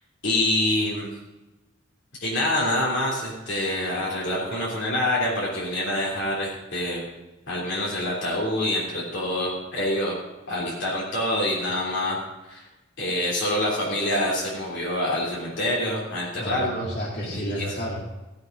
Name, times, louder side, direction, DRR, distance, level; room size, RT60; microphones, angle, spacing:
voice 1, 0.2-1.1 2.2-7.0 7.5-10.1 10.5-12.2 12.5-12.6 13.0-16.9 17.3-17.6, left 1 dB, 60° left, -6 dB, 3.3 m, -26 dB
voice 2, 16.4-18.0, equal, 45° left, -6 dB, 2.8 m, -31 dB
16.5 x 7.9 x 5.4 m, 1.1 s
head